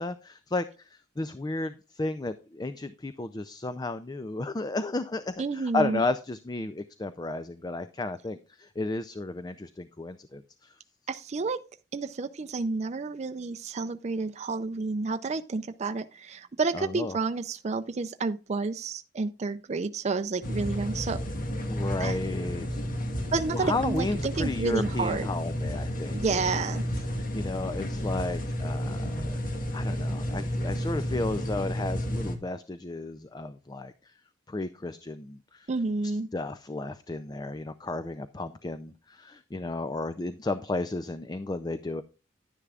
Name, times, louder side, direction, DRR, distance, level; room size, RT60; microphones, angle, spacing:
voice 1, 0.0-10.8 16.7-17.2 21.7-22.9 23.5-26.4 27.1-29.4 29.7-34.1 34.5-35.7 36.0-42.0, left 2 dB, 20° left, 0.4 m, -33 dB
voice 2, 5.4-6.0 11.1-11.6 11.9-21.2 22.0-22.2 23.3-25.3 26.1-26.8 35.7-36.3, right 4 dB, 35° right, 0.4 m, -30 dB
sound 1, 20.4-32.4, equal, 45° left, 1.6 m, -31 dB
11.0 x 10.0 x 2.4 m
head